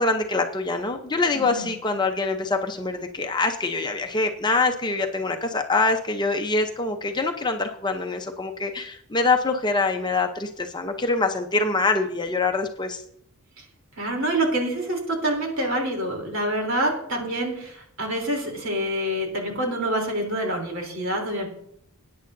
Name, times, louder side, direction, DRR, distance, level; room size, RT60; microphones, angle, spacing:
voice 1, 0.0-13.0, left 3 dB, 20° left, 5 dB, 0.7 m, -24 dB
voice 2, 1.3-1.7 13.6-13.7 14.0-21.5, right 1 dB, 60° right, 2 dB, 3.4 m, -26 dB
20.0 x 9.4 x 2.7 m, 0.69 s
head